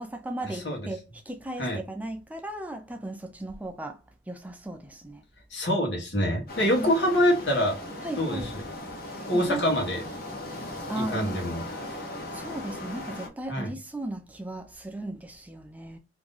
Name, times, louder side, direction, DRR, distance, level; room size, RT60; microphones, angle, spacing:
voice 1, 0.0-4.0 4.3-5.2 6.6-6.9 8.0-8.5 9.0-9.7 10.4-11.4 12.3-16.0, right 1 dB, 10° right, 0.3 m, -36 dB
voice 2, 0.5-0.9 1.6-1.8 5.5-7.8 8.2-8.6 9.3-10.0 10.9-12.0 13.5-13.7, equal, 75° left, 1.4 m, -26 dB
sound 1, 6.5-13.3, left 1 dB, 50° left, 1.0 m, -38 dB
3.0 x 2.6 x 3.7 m
head